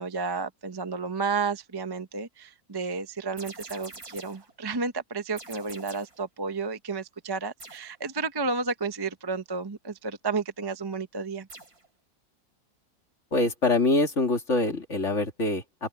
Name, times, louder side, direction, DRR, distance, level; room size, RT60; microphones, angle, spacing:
voice 1, 0.0-11.5, right 4 dB, 20° right, 0.9 m, -32 dB
sound 1, 3.4-4.5 5.4-6.2 7.6-8.0 11.5-11.9, right 2 dB, 70° right, 5.9 m, -45 dB
voice 2, 13.3-15.9, left 2 dB, 50° left, 2.9 m, -25 dB
open air
omnidirectional pair, 1.6 m